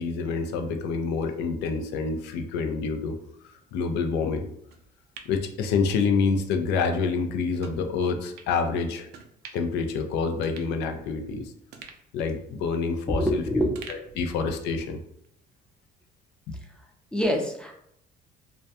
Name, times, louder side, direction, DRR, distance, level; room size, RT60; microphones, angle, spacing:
voice 1, 0.0-3.2 3.7-4.5 5.3-9.1 9.5-11.5 12.1-13.4 13.9-15.0 16.5-16.6, left 5 dB, 85° left, 6 dB, 0.4 m, -27 dB
sound 1, 4.7-6.3 6.7-6.8 7.6-7.8 8.4-8.5 9.1-9.8 10.1-10.2 10.4-11.3 11.7-13.3 13.7-14.9 15.2-15.3, right 6 dB, 70° right, 0.4 m, -48 dB
voice 2, 13.1-13.8 14.1-14.3 17.1-17.7, equal, 5° left, 2 dB, 0.4 m, -26 dB
2.2 x 2.1 x 2.7 m, 0.74 s
cardioid pair, 110°, 17 cm